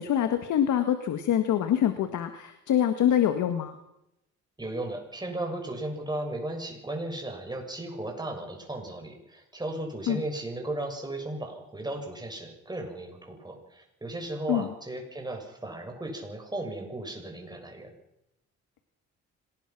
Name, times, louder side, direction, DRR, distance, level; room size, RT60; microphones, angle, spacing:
voice 1, 0.0-3.7 10.1-10.2 14.5-14.7, left 10 dB, 75° left, 9 dB, 1.8 m, -25 dB
voice 2, 4.6-17.9, right 1 dB, 15° right, 3 dB, 7.2 m, -35 dB
26.0 x 19.5 x 6.1 m, 0.84 s
cardioid pair, 90°, 30 cm